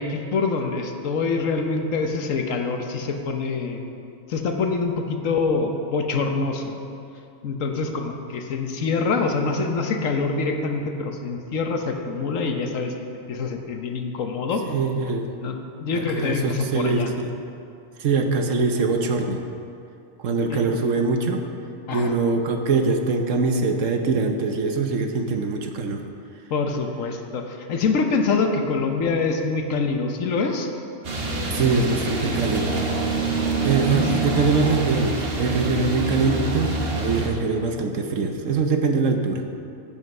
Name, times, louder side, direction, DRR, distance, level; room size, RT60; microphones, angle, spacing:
voice 1, 0.0-3.8 4.3-6.8 7.4-14.6 15.4-17.1 20.5-20.6 21.9-22.1 26.5-30.7 31.3-31.9 32.2-32.5 33.9-34.3, left 4 dB, 80° left, 4 dB, 1.3 m, -25 dB
voice 2, 14.7-15.3 15.9-17.3 18.0-19.4 20.2-21.4 21.9-26.0 31.5-32.7 33.6-39.4, right 4 dB, 75° right, 4 dB, 1.3 m, -23 dB
sound 1, 31.0-37.3, right 3 dB, 50° right, 1.3 m, -26 dB
15.5 x 5.7 x 5.4 m, 2.6 s
omnidirectional pair, 1.3 m